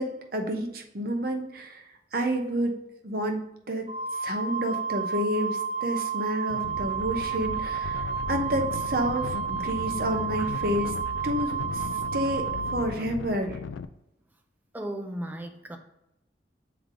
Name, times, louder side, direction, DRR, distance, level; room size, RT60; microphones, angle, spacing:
voice 1, 0.0-1.8 2.1-2.7 3.0-3.9 4.2-10.9 11.2-11.8 12.1-13.6, equal, 55° right, 4 dB, 0.8 m, -30 dB
Wind instrument woodwind instrument, 3.9-12.8, right 7 dB, 30° right, 1.1 m, -31 dB
sound 1, 6.5-13.8, left 5 dB, 90° left, 0.3 m, -37 dB
voice 2, 14.7-15.8, right 1 dB, 10° right, 5 dB, 0.4 m, -35 dB
7.7 x 3.4 x 3.8 m, 0.85 s
head